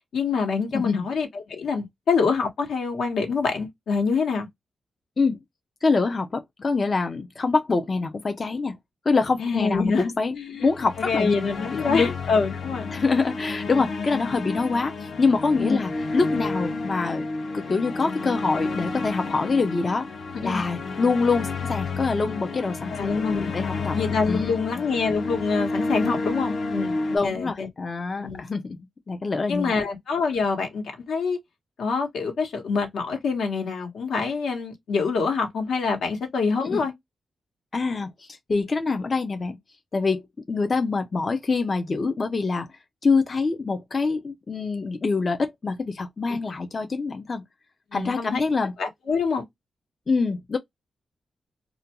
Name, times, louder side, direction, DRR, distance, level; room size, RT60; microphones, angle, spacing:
voice 1, 0.1-4.5 9.4-10.7 11.0-12.9 15.6-15.8 20.3-20.6 22.9-23.5 23.9-27.7 28.2-28.4 29.5-31.4 31.8-36.9 47.9-48.4 48.8-49.4, left 5 dB, 80° left, 1.0 m, -26 dB
voice 2, 0.7-1.1 5.2-5.4 5.8-8.8 9.1-10.3 10.6-11.3 11.7-12.1 12.9-17.3 17.5-20.1 20.4-23.2 23.5-24.0 24.3-24.6 27.1-28.8 29.1-29.8 36.6-36.8 37.7-39.6 39.9-42.7 43.0-47.4 47.9-48.7 50.1-50.6, left 4 dB, 35° left, 0.4 m, -25 dB
sound 1, 10.6-27.2, left 3 dB, 60° left, 0.7 m, -31 dB
2.4 x 2.2 x 2.8 m
wide cardioid pair, 120°, 0 cm